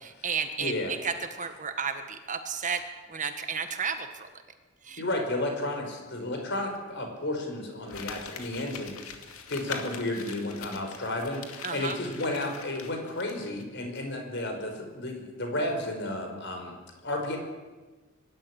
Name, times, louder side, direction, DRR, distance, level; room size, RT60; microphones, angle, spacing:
voice 1, 0.0-4.3 4.8-5.0 11.6-12.0, right 6 dB, 35° right, 8 dB, 1.6 m, -33 dB
voice 2, 0.6-0.9 5.0-9.2 9.5-16.7 17.0-17.4, left 1 dB, 55° left, 3 dB, 5.2 m, -32 dB
Crumpling crinkling, 7.9-13.6 13.9-14.0, left 6 dB, 85° left, 2.5 m, -43 dB
23.5 x 12.5 x 10.0 m, 1.3 s
head